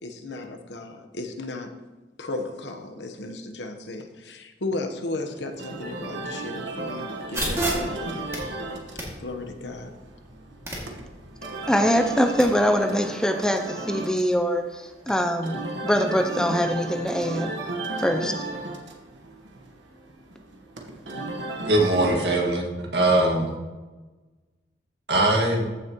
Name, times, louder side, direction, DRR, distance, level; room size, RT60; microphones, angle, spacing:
voice 1, 0.0-1.7 2.2-8.3 9.2-10.0, left 2 dB, 80° left, 5 dB, 1.0 m, -35 dB
sound 1, 5.5-22.1, right 2 dB, 90° right, 1.2 m, -35 dB
sound 2, 7.3-12.4, right 1 dB, 15° right, 2.1 m, -33 dB
voice 2, 11.7-17.5 18.0-18.5, equal, 5° left, 6 dB, 0.4 m, -23 dB
voice 3, 21.6-22.6 22.9-23.5 25.1-25.7, right 1 dB, 75° right, 0 dB, 1.8 m, -21 dB
14.5 x 6.5 x 3.0 m, 1.2 s
head